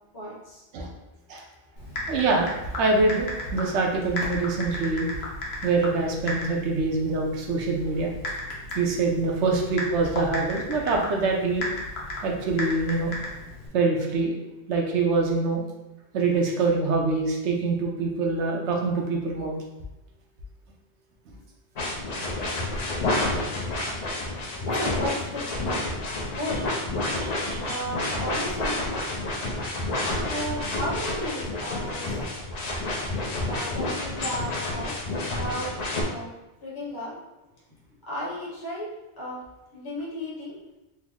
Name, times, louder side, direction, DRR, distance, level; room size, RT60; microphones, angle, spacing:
voice 1, 0.1-0.6 24.6-25.9 26.3-26.8 27.6-28.8 30.3-32.3 33.4-35.0 35.2-35.7 36.0-36.3 36.6-37.2 38.1-38.9 39.2-39.4 39.7-40.6, equal, 20° left, -7 dB, 0.8 m, -34 dB
Typing, 1.8-13.7, left 1 dB, 70° left, 1.0 m, -35 dB
voice 2, 2.1-5.1 5.6-8.1 8.7-11.6 12.2-13.1 13.7-14.4 14.7-15.6 16.1-19.5 27.2-27.8, right 3 dB, 85° right, 0 dB, 1.0 m, -25 dB
sound 1, 21.8-36.0, left 2 dB, 50° left, 0.5 m, -29 dB
3.4 x 2.1 x 3.5 m, 0.98 s
omnidirectional pair, 1.1 m